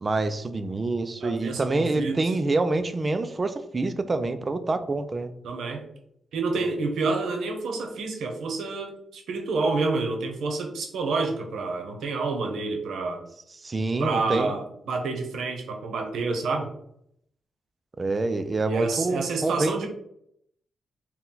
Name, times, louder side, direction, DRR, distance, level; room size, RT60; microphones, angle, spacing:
voice 1, 0.0-5.3 13.6-14.6 18.0-19.9, right 2 dB, 25° right, 10 dB, 0.3 m, -26 dB
voice 2, 1.2-2.2 5.4-5.9 6.3-13.2 14.0-16.7 18.6-19.9, right 3 dB, 80° right, 3 dB, 0.8 m, -28 dB
4.4 x 2.2 x 3.8 m, 0.73 s
wide cardioid pair, 155°, 0 cm